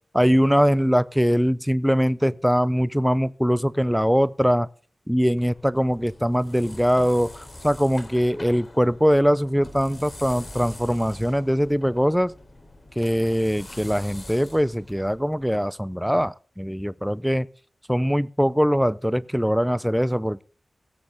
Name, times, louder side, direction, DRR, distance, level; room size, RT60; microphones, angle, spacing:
voice 1, 0.1-4.7 5.1-12.3 13.0-17.5 17.9-20.4, equal, ahead, 0.5 m, -22 dB
sound 1, 5.2-15.6, left 1 dB, 30° left, 3.5 m, -44 dB
17.0 x 8.6 x 3.5 m
wide cardioid pair, 75°, 0 cm